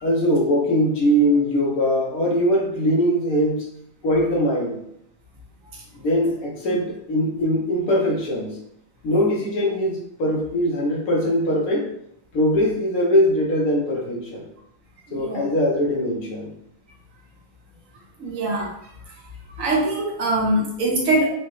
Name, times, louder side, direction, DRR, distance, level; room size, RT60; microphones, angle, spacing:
voice 1, 0.0-3.7 4.0-4.8 5.9-8.6 9.0-11.9 12.3-14.5 15.1-16.5, equal, 85° left, -1 dB, 1.4 m, -21 dB
voice 2, 15.1-15.4 18.2-18.7 19.6-21.3, right 2 dB, 65° right, -2 dB, 1.3 m, -22 dB
4.9 x 2.1 x 3.1 m, 0.74 s
omnidirectional pair, 1.5 m